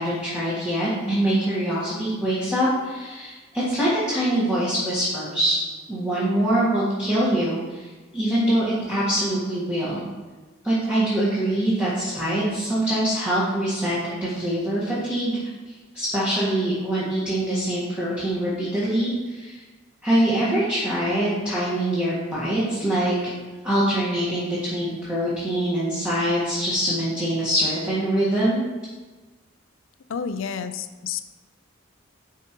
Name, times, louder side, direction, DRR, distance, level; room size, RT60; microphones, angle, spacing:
voice 1, 0.0-5.6 5.9-10.0 10.6-15.4 15.9-19.6 20.0-23.1 23.6-28.6, right 1 dB, 5° right, -9 dB, 1.5 m, -24 dB
voice 2, 30.1-31.2, left 6 dB, 70° left, 10 dB, 0.5 m, -30 dB
10.5 x 4.6 x 3.0 m, 1.3 s
head